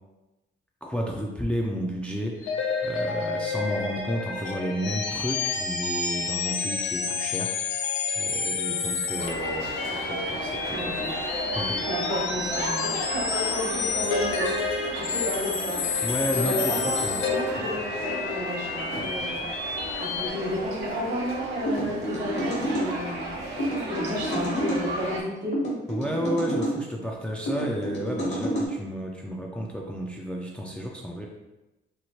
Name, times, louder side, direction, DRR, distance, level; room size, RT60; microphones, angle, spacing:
voice 1, 0.8-7.9 8.2-11.2 11.5-11.9 16.0-17.2 25.9-31.3, equal, 5° left, -1 dB, 0.3 m, -32 dB
sound 1, 2.4-20.3, left 5 dB, 85° left, 0.4 m, -29 dB
voice 2, 3.2-3.5 8.7-9.2 10.7-11.3 11.9-14.5 14.9-15.8 16.3-19.4 20.0-23.3 23.9-25.6, equal, 60° right, -2 dB, 1.0 m, -32 dB
sound 2, 9.2-25.2, right 1 dB, 75° right, 0.8 m, -34 dB
sound 3, 21.6-22.9 23.6-24.8 25.5-26.8 27.5-28.7, equal, 60° left, 1.1 m, -29 dB
3.0 x 2.1 x 2.8 m, 1.0 s
cardioid pair, 90°, 20 cm